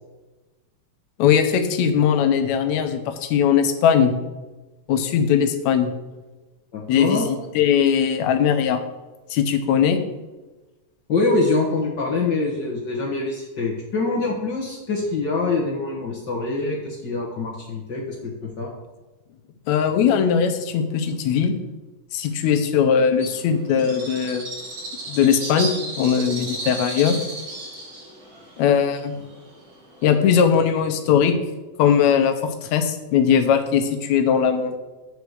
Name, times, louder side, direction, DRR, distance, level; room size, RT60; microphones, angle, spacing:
voice 1, 1.2-4.1 4.9-5.9 6.9-8.8 9.3-10.0 19.7-21.6 22.1-24.4 25.1-25.7 26.0-27.2 28.6-29.1 30.0-31.4 31.8-34.8, left 7 dB, 75° left, 7 dB, 2.0 m, -19 dB
voice 2, 6.7-7.3 11.1-18.3 18.6-18.7, left 3 dB, 50° left, -2 dB, 1.4 m, -24 dB
Bird, 23.2-30.4, right 2 dB, 65° right, 4.1 m, -34 dB
8.3 x 4.9 x 6.4 m, 1.1 s
omnidirectional pair, 3.3 m